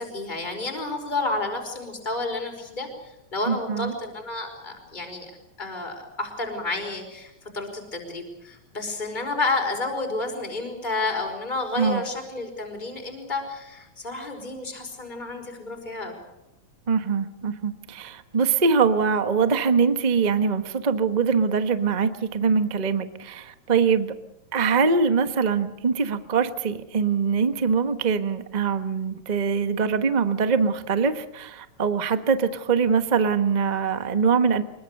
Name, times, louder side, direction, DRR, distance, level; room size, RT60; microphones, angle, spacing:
voice 1, 0.0-2.9 3.3-5.3 5.6-16.1, left 2 dB, 15° left, 3 dB, 5.2 m, -30 dB
voice 2, 3.5-3.9 11.8-12.0 16.9-24.1 24.5-34.6, right 5 dB, 75° right, 9 dB, 0.4 m, -23 dB
25.5 x 22.5 x 6.7 m, 0.89 s
omnidirectional pair, 3.3 m